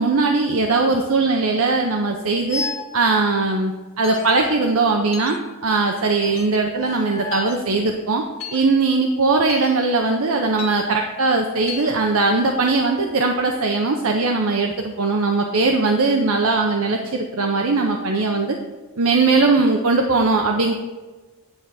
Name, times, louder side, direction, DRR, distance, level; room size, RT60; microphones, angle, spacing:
voice 1, 0.0-2.6 2.9-5.4 5.6-8.2 8.5-18.6 19.0-20.7, right 3 dB, 70° right, 2 dB, 0.7 m, -20 dB
sound 1, 2.5-3.0 4.1-5.4 6.7-7.6, left 3 dB, 35° left, 1.0 m, -33 dB
sound 2, 4.0-4.3 5.1-5.4 6.2-6.5 7.3-7.6 8.4-8.6 9.5-9.7 10.6-10.8 11.7-11.9, left 6 dB, 65° left, 1.7 m, -34 dB
9.8 x 3.5 x 6.3 m, 1.3 s
head